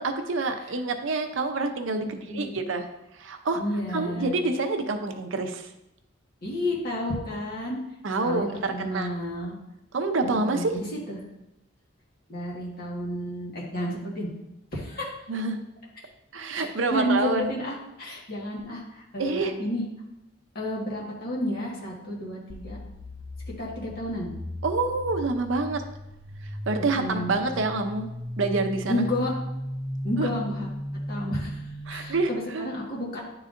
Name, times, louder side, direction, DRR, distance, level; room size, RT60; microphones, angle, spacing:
voice 1, 0.0-3.6 3.9-5.7 8.0-9.1 9.9-10.8 15.3-15.6 16.3-17.5 19.2-19.5 24.6-25.8 26.4-28.1 28.4-29.0 30.2-30.3 31.9-32.7, right 3 dB, 70° right, 6 dB, 0.6 m, -27 dB
voice 2, 2.0-2.7 3.5-4.3 6.4-7.8 8.2-9.6 10.2-11.2 12.3-14.3 14.7-15.1 16.6-19.8 20.5-22.8 23.5-24.3 26.8-27.3 28.9-29.3 30.0-30.7 31.1-33.2, left 1 dB, 45° left, -4 dB, 1.5 m, -31 dB
sound 1, 22.5-32.2, equal, 10° left, 0.4 m, -36 dB
9.8 x 3.9 x 2.5 m, 0.89 s
head